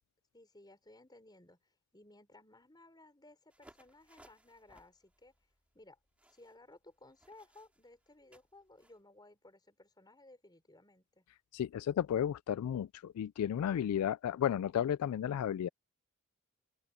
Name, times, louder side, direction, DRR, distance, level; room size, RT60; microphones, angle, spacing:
voice 1, 0.3-5.4 5.7-6.0 6.3-11.3, left 2 dB, 20° left, 5.1 m, -59 dB
sound 1, 3.5-9.0, right 1 dB, 5° right, 2.8 m, -65 dB
voice 2, 11.5-15.7, left 9 dB, 85° left, 0.3 m, -33 dB
head